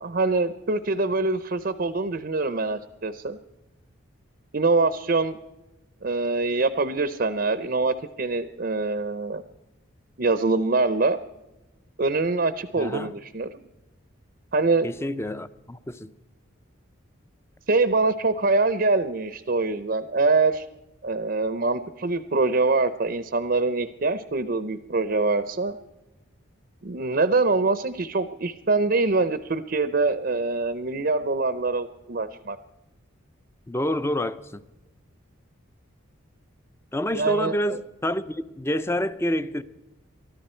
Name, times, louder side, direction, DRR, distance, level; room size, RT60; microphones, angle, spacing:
voice 1, 0.0-3.4 4.5-5.4 6.0-9.4 10.2-11.2 12.0-13.5 14.5-14.9 17.7-20.7 21.0-25.8 26.8-32.6 37.1-37.8, right 3 dB, 45° right, 0.6 m, -24 dB
voice 2, 12.8-13.1 14.8-16.1 33.7-34.6 36.9-39.6, equal, 10° left, 0.5 m, -28 dB
24.0 x 13.5 x 4.4 m
head